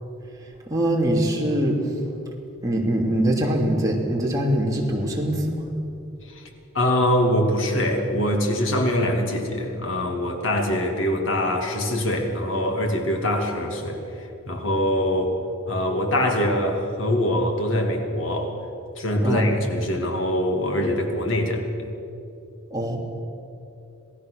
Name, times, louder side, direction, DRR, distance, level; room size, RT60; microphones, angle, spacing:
voice 1, 0.7-1.9 2.6-5.6 19.2-19.5 22.7-23.0, right 1 dB, 15° right, -2 dB, 3.1 m, -23 dB
voice 2, 6.7-14.0 14.5-15.3 15.7-18.5 19.0-21.9, left 1 dB, 60° left, 3 dB, 2.7 m, -23 dB
27.5 x 18.0 x 6.6 m, 2.8 s
head